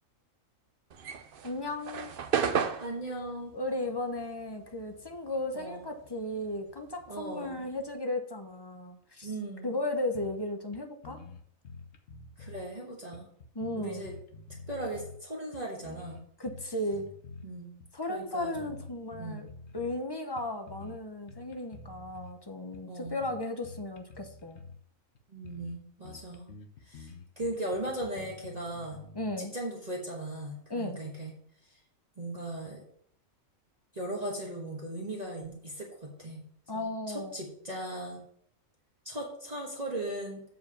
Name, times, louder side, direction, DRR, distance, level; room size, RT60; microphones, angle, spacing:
sound 1, 0.9-5.6 5.9-7.9, right 7 dB, 50° right, 0.8 m, -34 dB
voice 1, 1.4-2.1 3.5-9.3 9.6-11.2 13.5-14.0 16.4-17.1 17.9-19.5 19.7-24.6 29.1-29.5 30.7-31.0 36.7-37.3, left 1 dB, 20° left, 6 dB, 0.7 m, -35 dB
voice 2, 2.8-3.5 5.5-5.8 7.1-7.6 9.2-9.8 12.4-13.3 13.8-14.1 14.7-16.2 17.4-17.7 18.1-18.7 19.2-19.4 22.9-23.2 25.3-26.5 26.8-29.0 29.4-31.3 32.2-32.8 33.9-36.4 36.7-38.2 39.0-40.4, right 1 dB, 30° right, -3 dB, 1.5 m, -38 dB
sound 2, 10.1-10.5 10.7-10.8 11.0-12.7 13.1-15.2 15.5-17.5 17.8-18.0 18.4-20.0 20.4-21.0 21.3-22.3 22.7-24.8 25.2-25.3 25.4-25.8 26.0-29.3, left 4 dB, 60° left, 1.0 m, -48 dB
7.7 x 4.7 x 6.9 m, 0.66 s
omnidirectional pair, 1.4 m